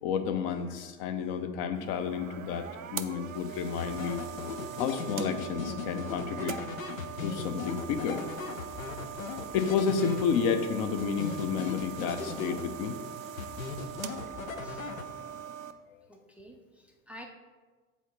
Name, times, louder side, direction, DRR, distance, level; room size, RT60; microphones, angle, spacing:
voice 1, 0.0-4.2 4.8-6.6 7.2-8.3 9.5-13.0, left 6 dB, 45° left, 8 dB, 0.7 m, -31 dB
sound 1, 1.7-15.7, right 9 dB, 75° right, 0.5 m, -42 dB
sound 2, 3.8-10.6 11.0-13.0 13.4-15.4, left 6 dB, 80° left, 0.6 m, -38 dB
voice 2, 16.1-17.3, equal, 5° right, 2 dB, 0.4 m, -50 dB
7.1 x 4.1 x 4.3 m, 1.3 s
figure-of-eight pair, 75°, 40 cm